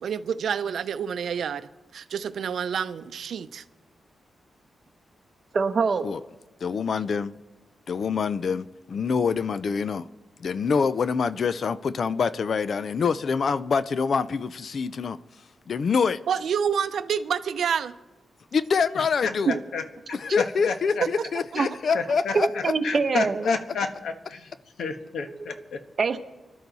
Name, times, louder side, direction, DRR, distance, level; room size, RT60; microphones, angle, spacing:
voice 1, 0.0-3.6 16.3-17.9, right 7 dB, 75° right, 0.6 m, -28 dB
voice 2, 5.5-6.0 19.5-19.6 21.5-21.7 22.3-23.5 26.0-26.2, right 4 dB, 40° right, 1.0 m, -23 dB
voice 3, 6.6-7.3 7.9-10.1 10.4-15.2 15.7-16.2 18.5-19.5 20.1-22.7, left 5 dB, 50° left, 0.4 m, -25 dB
voice 4, 19.2-21.0 21.6-21.7 21.9-24.5 24.8-25.8, left 4 dB, 80° left, 1.3 m, -31 dB
25.0 x 11.5 x 4.1 m
wide cardioid pair, 160°, 0 cm